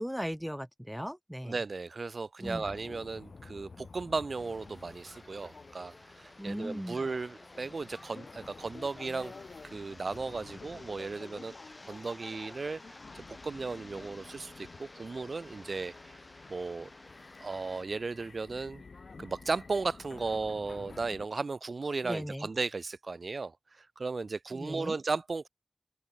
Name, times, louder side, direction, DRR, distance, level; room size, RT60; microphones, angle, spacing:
voice 1, 0.0-1.6 2.4-2.6 6.4-7.0 22.0-22.5 24.5-25.0, equal, ahead, 0.5 m, -37 dB
voice 2, 1.4-9.3 9.6-11.5 11.8-12.8 13.1-16.2 16.5-16.9 17.4-18.8 19.2-25.5, right 4 dB, 75° right, 0.3 m, -36 dB
sound 1, 2.4-21.3, left 4 dB, 85° left, 2.4 m, -51 dB
sound 2, 4.4-17.8, left 2 dB, 35° left, 1.0 m, -53 dB
open air
wide cardioid pair, 50°, 0 cm